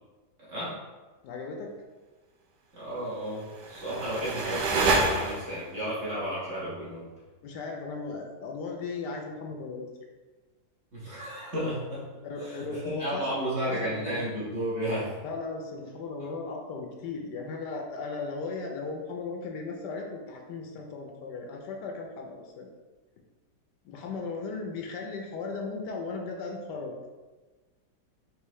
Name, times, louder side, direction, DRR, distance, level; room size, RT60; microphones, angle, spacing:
voice 1, 1.2-1.7 7.4-9.9 12.2-13.4 13.7-14.2 15.2-22.7 23.8-26.9, left 4 dB, 75° left, 2 dB, 1.2 m, -36 dB
voice 2, 2.8-7.1 10.9-12.0 12.4-15.1, right 1 dB, 40° right, -9 dB, 1.7 m, -33 dB
sound 1, 3.4-5.8, right 3 dB, 75° right, 1.3 m, -28 dB
4.6 x 3.1 x 3.1 m, 1.2 s
omnidirectional pair, 1.9 m